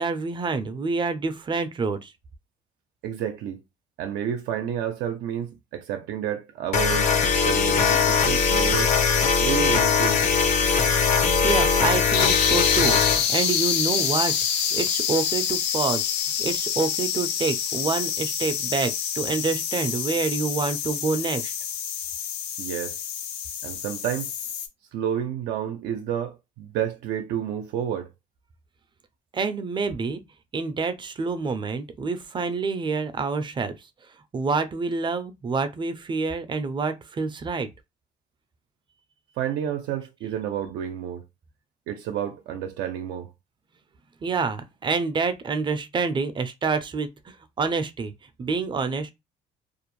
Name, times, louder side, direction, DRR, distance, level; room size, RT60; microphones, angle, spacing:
voice 1, 0.0-2.1 11.1-14.3 14.7-16.0 16.4-21.5 29.3-30.2 30.5-33.8 34.3-37.7 44.2-48.1 48.4-49.1, right 4 dB, 30° right, 0.4 m, -27 dB
voice 2, 3.0-3.6 4.0-9.0 9.4-10.2 22.6-23.0 23.6-24.3 24.9-28.1 39.4-41.2 41.9-43.3, right 9 dB, 85° right, 0.5 m, -30 dB
sound 1, 6.7-13.2, left 5 dB, 45° left, 0.6 m, -21 dB
sound 2, 7.0-24.7, left 8 dB, 90° left, 0.6 m, -28 dB
2.5 x 2.1 x 3.0 m
cardioid pair, 110°, 17 cm